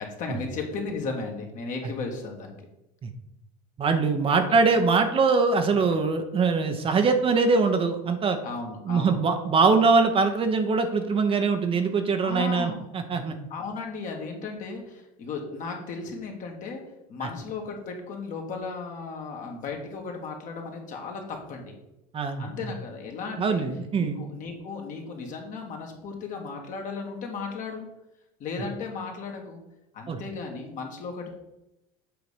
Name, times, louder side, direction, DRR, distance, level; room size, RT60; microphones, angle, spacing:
voice 1, 0.0-2.6 4.4-4.5 8.4-9.2 12.2-12.9 13.5-16.8 17.1-21.8 22.4-23.7 24.0-27.9 28.4-29.6 29.9-31.4, left 4 dB, 45° left, 1 dB, 1.8 m, -35 dB
voice 2, 3.8-8.4 8.9-13.3 17.2-17.3 22.1-22.5 23.4-24.2 30.1-30.2, right 4 dB, 30° right, 6 dB, 0.9 m, -23 dB
7.9 x 4.0 x 5.0 m, 0.89 s
hypercardioid pair, 95°, 18 cm